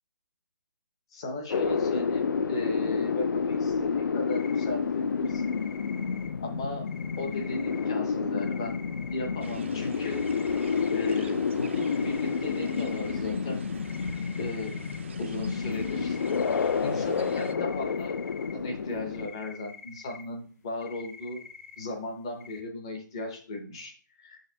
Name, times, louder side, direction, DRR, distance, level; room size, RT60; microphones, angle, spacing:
voice 1, 1.1-5.5 6.4-6.9 7.2-8.8 9.1-10.2 10.9-13.7 14.4-14.8 15.2-16.2 16.8-18.1 18.5-21.4 21.8-24.4, left 2 dB, 15° left, 4 dB, 0.5 m, -36 dB
sound 1, 1.5-19.3, left 5 dB, 75° left, 0.5 m, -29 dB
sound 2, 4.3-4.7 5.2-6.3 6.9-7.9 8.4-9.5 10.0-11.1 11.8-13.2 13.8-15.0 15.5-16.7 17.3-18.5 18.9-20.2 20.8-21.8 22.4-22.6, left 5 dB, 50° left, 1.5 m, -47 dB
sound 3, 9.4-17.6, right 4 dB, 35° right, 0.4 m, -47 dB
6.4 x 6.3 x 2.7 m, 0.42 s
hypercardioid pair, 180°, 11 cm